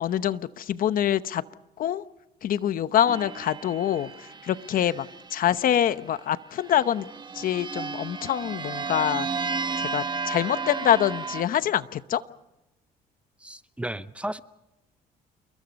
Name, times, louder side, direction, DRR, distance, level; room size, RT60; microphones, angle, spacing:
voice 1, 0.0-1.4 1.8-2.0 2.4-7.1 7.3-9.3 9.8-12.2, left 10 dB, 55° left, 0.9 m, -25 dB
sound 1, 3.1-5.8 6.6-11.4, right 4 dB, 25° right, 1.2 m, -33 dB
voice 2, 13.4-14.4, right 1 dB, 5° right, 0.8 m, -34 dB
28.5 x 22.5 x 5.3 m
cardioid pair, 110°, 17 cm